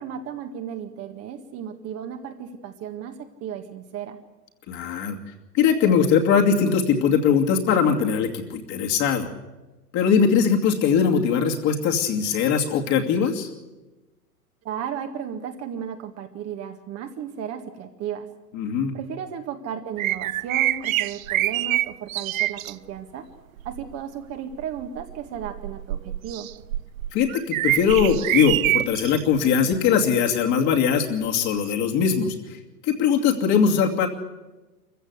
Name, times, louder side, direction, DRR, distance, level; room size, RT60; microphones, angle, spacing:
voice 1, 0.0-4.2 14.6-18.3 18.9-23.3 23.7-26.5, right 8 dB, 30° right, 5 dB, 1.8 m, -34 dB
voice 2, 4.7-5.2 5.5-9.3 9.9-13.5 18.5-18.9 27.1-32.6 32.8-34.1, left 7 dB, 35° left, 2 dB, 2.6 m, -21 dB
sound 1, 20.0-22.7 23.6-23.9 24.5-29.2 29.7-29.9 31.7-31.8, right 14 dB, 55° right, 0.7 m, -26 dB
26.0 x 15.0 x 8.1 m, 1.1 s
figure-of-eight pair, 105°, 48 cm